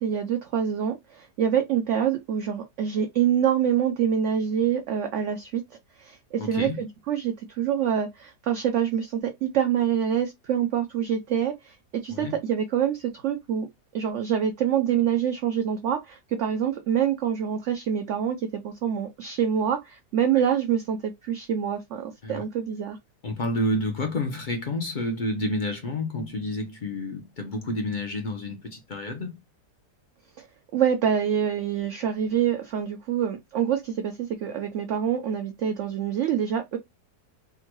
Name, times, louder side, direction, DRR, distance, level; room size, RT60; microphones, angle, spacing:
voice 1, 0.0-5.6 6.0-13.7 13.9-23.0 30.4-30.5 30.7-36.8, right 9 dB, 70° right, 0.7 m, -26 dB
voice 2, 6.4-6.8 12.1-12.3 22.2-22.4 23.2-29.4, left 1 dB, 60° left, 0.4 m, -29 dB
3.6 x 2.2 x 2.9 m
omnidirectional pair, 1.7 m